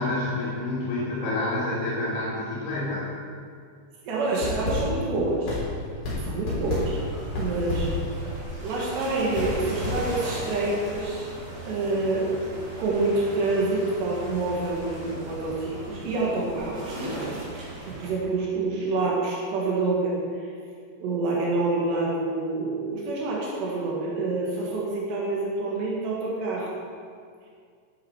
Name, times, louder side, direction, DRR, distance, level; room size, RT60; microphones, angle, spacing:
voice 1, 0.0-3.0 6.1-6.3, left 2 dB, 80° left, -10 dB, 4.5 m, -28 dB
voice 2, 4.0-5.6 6.2-7.0 7.4-7.9 8.6-11.3 11.6-20.5 21.0-26.7, right 2 dB, 90° right, -4 dB, 4.1 m, -27 dB
sound 1, 4.3-10.5, left 2 dB, 55° left, 5.3 m, -31 dB
sound 2, 6.6-18.1, right 1 dB, 65° right, 5.5 m, -38 dB
14.0 x 10.0 x 4.9 m, 2.2 s
omnidirectional pair, 4.7 m